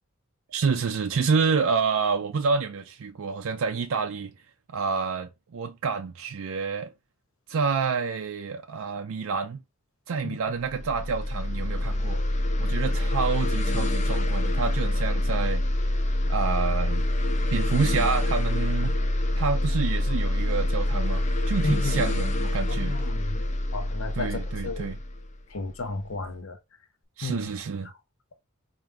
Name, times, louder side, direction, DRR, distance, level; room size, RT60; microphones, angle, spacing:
voice 1, 0.5-4.3 4.7-6.9 7.5-9.6 10.1-12.2 12.6-15.6 16.3-17.1 17.5-18.9 19.4-23.0 24.2-25.0 27.2-27.9, right 5 dB, 70° right, 0.4 m, -28 dB
sound 1, 10.6-26.0, left 1 dB, 30° left, 0.5 m, -26 dB
voice 2, 21.6-22.0 22.7-23.5 23.7-24.9 25.5-26.6 27.2-27.4, left 3 dB, 70° left, 0.7 m, -33 dB
4.4 x 2.5 x 3.4 m
head